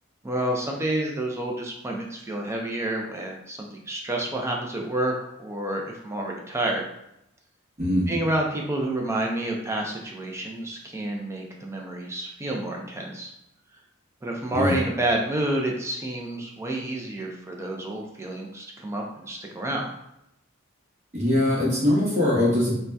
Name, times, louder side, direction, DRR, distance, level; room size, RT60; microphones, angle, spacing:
voice 1, 0.2-5.1 5.4-6.8 8.1-13.3 14.2-19.9, right 1 dB, 15° right, 0 dB, 0.3 m, -29 dB
voice 2, 7.8-8.2 14.5-14.8 21.1-22.8, left 1 dB, 35° right, -6 dB, 0.9 m, -22 dB
2.7 x 2.1 x 3.3 m, 0.80 s
head